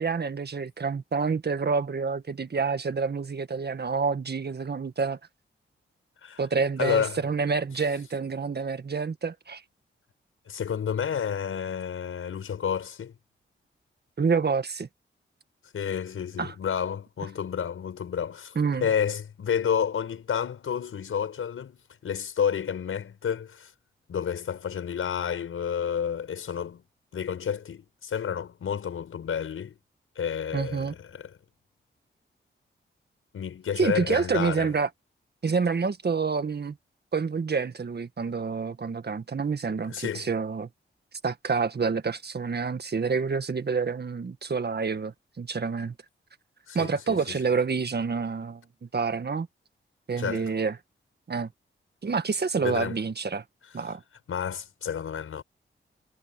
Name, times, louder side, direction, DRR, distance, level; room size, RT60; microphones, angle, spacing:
voice 1, 0.0-5.2 6.4-9.6 14.2-14.9 16.4-16.5 18.5-18.9 30.5-30.9 33.8-34.9 35.4-36.8 37.1-40.7 41.2-45.9 46.7-49.5 50.1-50.8 51.3-51.5 52.0-53.4 53.7-54.0, right 5 dB, 50° right, 1.7 m, -28 dB
voice 2, 6.8-7.2 10.5-13.1 15.7-18.6 18.8-23.7 24.1-26.8 27.1-29.7 30.2-31.3 33.3-34.7 39.9-40.3 46.7-47.4 50.2-50.5 52.6-53.0 54.3-55.4, left 8 dB, 85° left, 5.6 m, -30 dB
cardioid pair, 55°, 21 cm